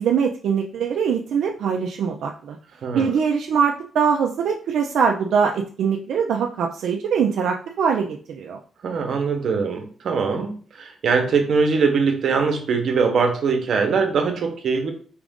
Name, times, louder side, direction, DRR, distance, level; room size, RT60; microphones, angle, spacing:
voice 1, 0.0-2.6 2.9-8.6, right 6 dB, 75° right, 1 dB, 0.4 m, -22 dB
voice 2, 2.8-3.1 8.8-14.9, right 5 dB, 50° right, 4 dB, 0.8 m, -22 dB
4.8 x 2.5 x 3.5 m, 0.43 s
wide cardioid pair, 175°, 0 cm